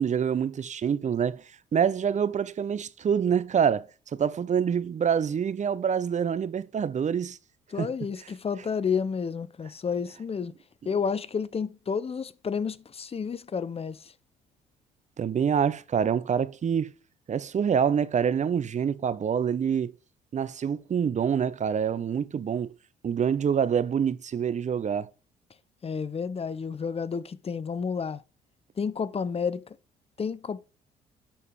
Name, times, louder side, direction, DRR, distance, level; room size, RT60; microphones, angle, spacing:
voice 1, 0.0-1.4 1.7-7.4 7.8-7.9 15.2-16.9 17.3-19.9 20.3-22.7 23.0-25.1, right 7 dB, 40° right, 0.8 m, -26 dB
voice 2, 7.7-10.5 10.8-14.1 25.8-28.2 28.8-29.8 30.2-30.6, left 6 dB, 30° left, 0.8 m, -30 dB
11.0 x 4.8 x 4.9 m
hypercardioid pair, 50°, 19 cm